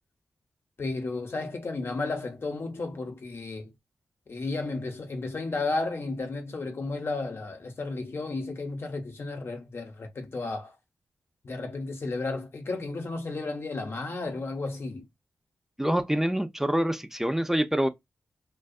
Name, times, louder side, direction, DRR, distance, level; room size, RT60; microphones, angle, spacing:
voice 1, 0.8-3.7 4.3-10.8 11.4-15.1, left 3 dB, 55° left, 0.8 m, -33 dB
voice 2, 15.8-17.9, equal, 5° right, 0.5 m, -26 dB
2.5 x 2.2 x 2.4 m
cardioid pair, 45°, 5 cm